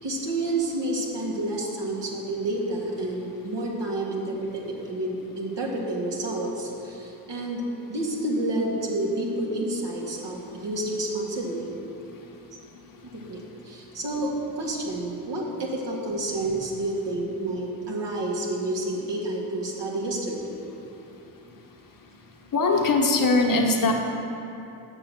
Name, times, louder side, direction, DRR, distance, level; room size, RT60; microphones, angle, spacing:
voice 1, 0.0-7.6 7.9-11.7 13.1-20.5, right 1 dB, 60° right, -2 dB, 2.0 m, -29 dB
voice 2, 22.5-23.9, left 3 dB, 45° left, 1 dB, 1.2 m, -21 dB
7.6 x 6.2 x 6.6 m, 2.9 s
supercardioid pair, 60°, 48 cm